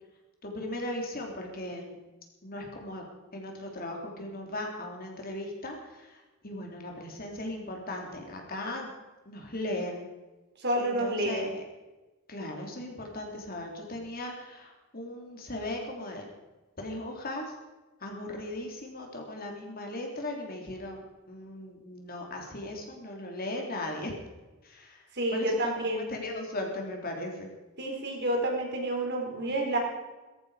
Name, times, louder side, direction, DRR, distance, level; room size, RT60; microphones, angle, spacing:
voice 1, 0.4-2.0 2.4-3.1 3.3-8.9 9.2-10.1 10.8-11.6 12.3-16.2 16.8-17.5 18.0-24.1 24.6-25.0 25.3-25.8 26.1-27.5, left 1 dB, 45° left, 1 dB, 3.2 m, -37 dB
voice 2, 10.6-11.5 25.1-26.1 27.8-29.8, right 1 dB, 55° right, 1 dB, 4.0 m, -29 dB
17.0 x 14.5 x 5.0 m, 1.1 s
head